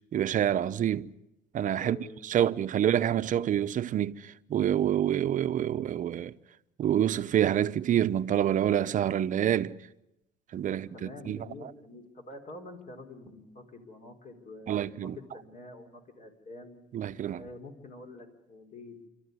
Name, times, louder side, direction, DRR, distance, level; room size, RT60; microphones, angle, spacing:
voice 1, 0.1-1.1 1.5-2.0 2.2-6.3 6.8-9.8 10.5-11.4 14.7-15.2 16.9-17.4, right 10 dB, 50° right, 0.8 m, -27 dB
voice 2, 1.8-2.5 10.7-16.8 17.3-19.1, left 2 dB, 45° left, 4.4 m, -47 dB
27.0 x 13.0 x 9.6 m
cardioid pair, 110°, 17 cm